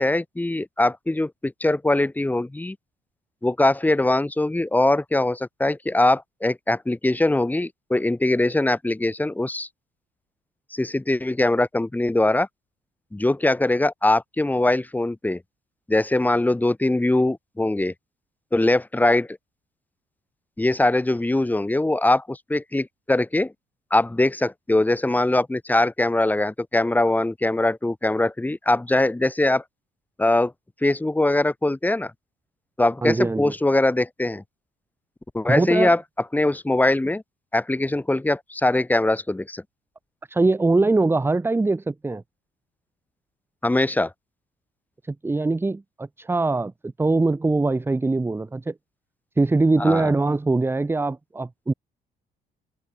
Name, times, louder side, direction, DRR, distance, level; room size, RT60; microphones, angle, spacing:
voice 1, 0.0-2.8 3.4-9.7 10.7-12.5 13.1-15.4 15.9-17.9 18.5-19.4 20.6-23.5 23.9-29.6 30.2-30.5 30.8-32.1 32.8-34.4 35.3-36.0 36.3-37.2 37.5-39.6 43.6-44.1 49.8-50.1, left 2 dB, 10° left, 5.1 m, -22 dB
voice 2, 33.0-33.5 35.5-35.9 40.3-42.2 45.1-48.7 49.4-51.7, right 3 dB, 15° right, 1.3 m, -22 dB
cardioid pair, 110°, 17 cm